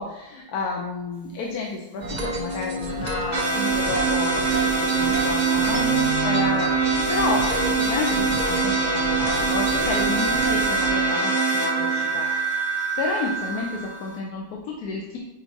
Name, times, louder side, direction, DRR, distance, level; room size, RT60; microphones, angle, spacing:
voice 1, 0.0-4.5 4.8-12.3 13.0-15.2, left 3 dB, 80° left, 0 dB, 1.2 m, -31 dB
sound 1, 2.0-10.9, right 1 dB, 35° right, 0.9 m, -30 dB
sound 2, 3.3-14.2, right 4 dB, 15° right, 2.4 m, -23 dB
9.0 x 4.6 x 2.7 m, 1.1 s
omnidirectional pair, 1.6 m